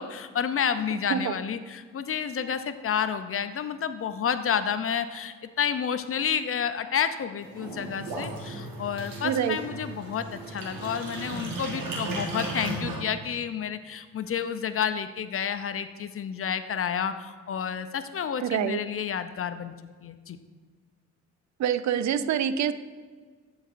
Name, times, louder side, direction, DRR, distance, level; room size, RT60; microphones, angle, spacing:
voice 1, 0.0-19.7 20.0-20.4, left 7 dB, 45° left, 11 dB, 0.5 m, -30 dB
sound 1, 7.4-13.0, right 2 dB, 85° right, 1.4 m, -35 dB
voice 2, 9.2-9.6 18.4-18.8 21.6-22.7, right 9 dB, 55° right, 13 dB, 0.5 m, -26 dB
12.0 x 4.0 x 2.5 m, 1.5 s
supercardioid pair, 50°, 33 cm